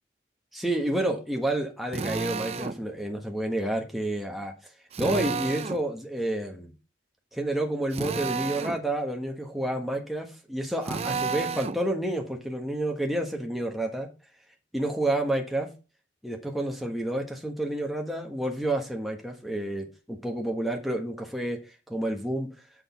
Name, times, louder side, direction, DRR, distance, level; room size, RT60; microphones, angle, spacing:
voice 1, 0.5-4.5 5.0-6.7 7.3-14.1 14.7-15.7 16.2-21.6 21.9-22.5, right 1 dB, ahead, 1 dB, 1.3 m, -29 dB
Drill, 1.9-2.8 4.9-5.8 7.9-8.8 10.8-11.8, right 5 dB, 35° right, 0.4 m, -31 dB
6.3 x 6.3 x 4.3 m, 0.31 s
head